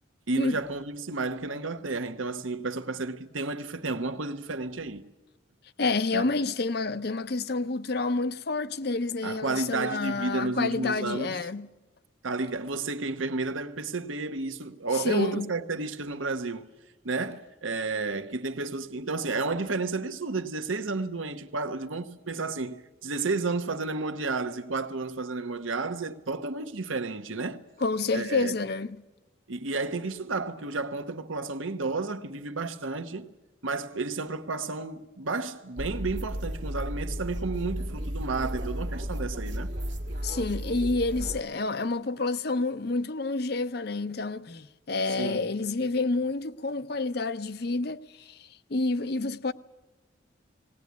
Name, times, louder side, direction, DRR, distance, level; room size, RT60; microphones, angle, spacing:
voice 1, 0.3-5.0 6.1-6.3 9.2-11.4 12.2-16.7 17.0-27.6 28.1-28.5 29.5-33.3 33.6-39.7 45.2-45.5, right 3 dB, 90° right, 1.1 m, -32 dB
voice 2, 5.8-11.7 14.9-15.5 27.8-29.0 40.2-49.5, left 3 dB, 55° left, 0.6 m, -29 dB
sound 1, 35.8-41.4, equal, 65° right, 1.6 m, -34 dB
19.0 x 18.5 x 9.4 m
head